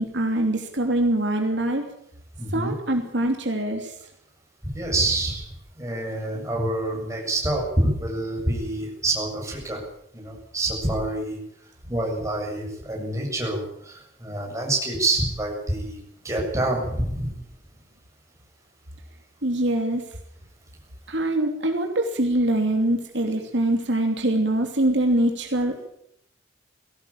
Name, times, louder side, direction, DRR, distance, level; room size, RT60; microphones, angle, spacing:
voice 1, 0.0-1.8 2.5-3.9 19.4-20.1 21.1-25.8, right 1 dB, 65° right, 3 dB, 2.9 m, -23 dB
voice 2, 2.4-2.7 4.6-5.5 5.8-9.8 10.1-11.4 11.9-16.0 16.2-17.5, right 2 dB, 15° right, -1 dB, 7.4 m, -27 dB
20.0 x 17.5 x 8.7 m, 0.74 s
head